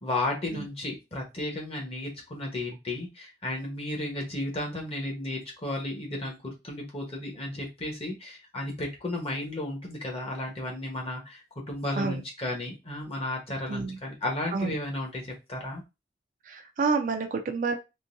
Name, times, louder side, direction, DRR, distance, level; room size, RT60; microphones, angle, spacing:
voice 1, 0.0-15.8, left 1 dB, 35° left, 0 dB, 1.1 m, -34 dB
voice 2, 16.5-17.7, right 4 dB, 45° right, 5 dB, 0.4 m, -29 dB
3.8 x 2.7 x 2.6 m, 0.25 s
head